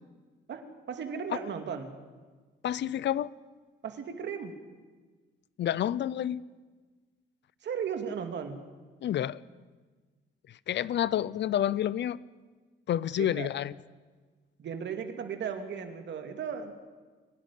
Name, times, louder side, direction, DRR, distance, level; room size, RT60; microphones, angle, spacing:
voice 1, 0.5-1.9 3.8-4.5 7.6-8.6 13.2-13.5 14.6-16.7, right 7 dB, 65° right, 6 dB, 2.5 m, -36 dB
voice 2, 2.6-3.3 5.6-6.4 9.0-9.4 10.7-12.2 12.9-13.7, left 11 dB, 65° left, 19 dB, 0.7 m, -29 dB
24.0 x 12.0 x 10.0 m, 1.4 s
cardioid pair, 90°, 20 cm